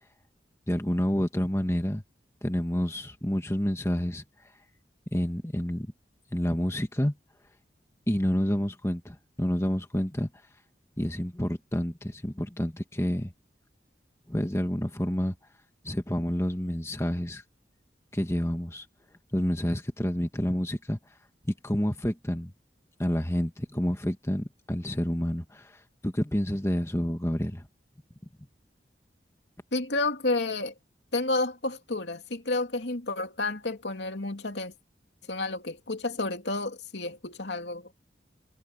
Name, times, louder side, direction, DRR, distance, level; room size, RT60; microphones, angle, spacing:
voice 1, 0.7-2.0 2.4-4.2 5.1-5.9 6.3-7.1 8.1-10.3 11.0-13.3 14.3-15.3 15.8-17.4 18.1-18.8 19.3-21.0 21.4-22.5 23.0-27.7, equal, 15° left, 1.6 m, -29 dB
voice 2, 29.7-30.7 31.1-34.7 35.3-37.9, left 2 dB, 80° left, 2.6 m, -30 dB
head